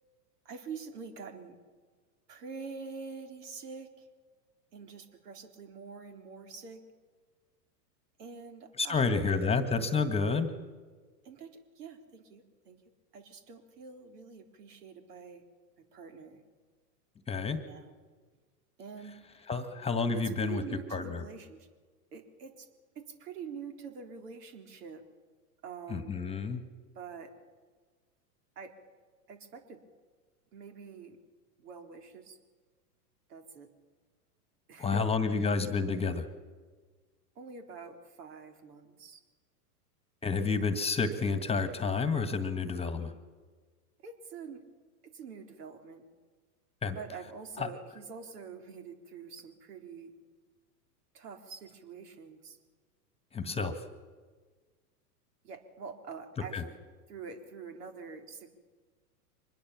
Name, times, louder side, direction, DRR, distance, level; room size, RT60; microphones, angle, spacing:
voice 1, 0.5-1.6 2.3-4.1 4.7-6.8 8.2-9.7 11.2-11.5 11.8-12.8 13.1-15.4 15.9-16.4 17.5-17.9 18.8-19.5 20.1-21.7 22.1-22.7 23.0-25.0 25.6-26.2 26.9-27.3 28.6-28.7 29.3-29.8 30.5-31.2 31.6-32.4 33.3-33.7 34.7-35.1 35.4-35.5 37.4-39.2 44.0-44.6 45.1-46.0 47.0-50.1 51.1-52.6 55.4-56.8 57.1-58.5, right 5 dB, 75° right, 5 dB, 4.1 m, -46 dB
voice 2, 8.8-10.5 17.3-17.6 19.5-20.6 20.9-21.2 25.9-26.6 34.8-36.2 40.2-43.1 46.8-47.0 47.6-47.7 53.3-53.7 56.5-56.6, left 4 dB, 10° left, 10 dB, 1.6 m, -29 dB
24.5 x 21.0 x 7.4 m, 1.4 s
hypercardioid pair, 120°, 48 cm